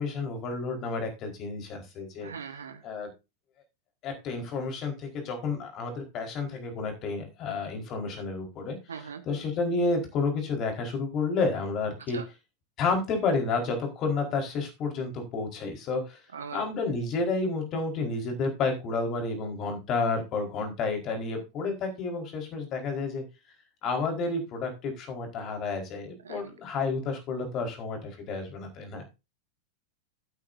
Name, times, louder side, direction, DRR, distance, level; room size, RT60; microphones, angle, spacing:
voice 1, 0.0-2.3 2.8-3.1 4.0-12.2 12.8-16.2 16.5-23.2 23.8-29.1, left 3 dB, 35° left, 3 dB, 4.4 m, -30 dB
voice 2, 2.2-2.8 8.9-9.2 12.1-12.2 16.3-16.6 26.2-26.4, right 6 dB, 70° right, 9 dB, 1.4 m, -40 dB
16.5 x 9.1 x 2.7 m, 0.26 s
figure-of-eight pair, 90°, 0 cm